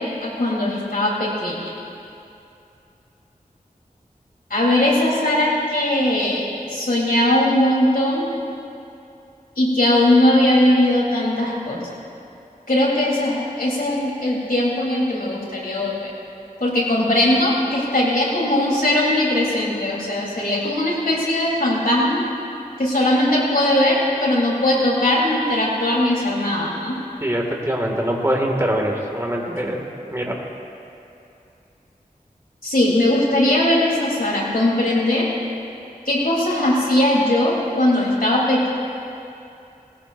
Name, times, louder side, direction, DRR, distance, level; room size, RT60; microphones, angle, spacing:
voice 1, 0.0-1.7 4.5-6.4 6.7-8.3 9.6-11.8 12.7-16.1 16.6-22.3 22.8-27.0 32.6-35.3 36.1-38.7, left 1 dB, 80° left, -5 dB, 3.9 m, -19 dB
voice 2, 27.2-29.8 30.1-30.4, right 1 dB, 20° right, -1 dB, 2.3 m, -23 dB
19.5 x 17.5 x 2.7 m, 2.7 s
wide cardioid pair, 50°, 15 cm